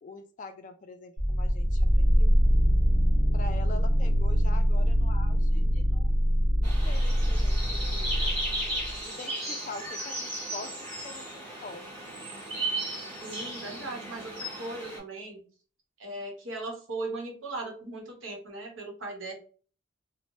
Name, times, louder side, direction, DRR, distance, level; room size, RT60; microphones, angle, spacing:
voice 1, 0.0-2.3 3.3-8.1 9.0-10.7 11.0-11.8, left 3 dB, 40° left, 9 dB, 0.3 m, -44 dB
sound 1, 1.2-9.0, equal, 5° left, 0.7 m, -24 dB
sound 2, 6.6-15.0, right 1 dB, 35° right, 1.2 m, -35 dB
voice 2, 13.2-15.4 16.0-19.3, right 2 dB, 75° right, 1 dB, 0.9 m, -38 dB
3.1 x 2.1 x 2.6 m, 0.41 s
head